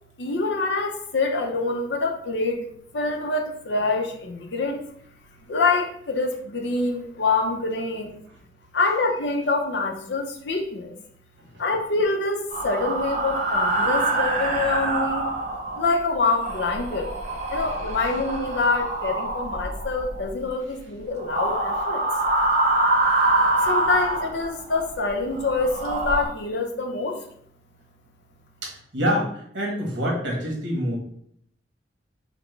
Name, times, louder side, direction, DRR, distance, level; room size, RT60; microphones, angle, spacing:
voice 1, 0.2-2.6 2.9-4.8 5.4-8.2 8.7-10.9 11.6-15.3 15.8-17.1 17.5-22.0 23.6-27.2, left 3 dB, 65° left, 3 dB, 0.6 m, -25 dB
sound 1, 12.5-15.9 16.3-20.3 21.2-24.8 25.3-26.3, right 2 dB, 40° right, 0.8 m, -25 dB
voice 2, 28.6-31.0, equal, 75° right, -2 dB, 1.3 m, -26 dB
5.0 x 2.2 x 3.3 m, 0.67 s
head